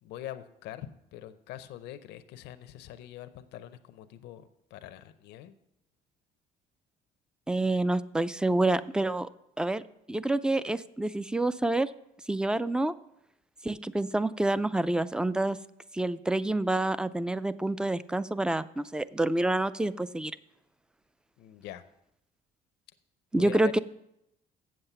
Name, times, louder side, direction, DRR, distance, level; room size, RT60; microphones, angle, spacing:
voice 1, 0.0-5.6 21.4-21.8 23.3-23.8, left 12 dB, 85° left, 11 dB, 0.6 m, -44 dB
voice 2, 7.5-9.3 9.6-9.8 10.1-11.9 12.3-12.9 13.6-15.6 15.9-20.3 23.3-23.8, right 2 dB, 5° right, 16 dB, 0.3 m, -27 dB
7.7 x 7.4 x 6.7 m, 0.81 s
cardioid pair, 110°, 17 cm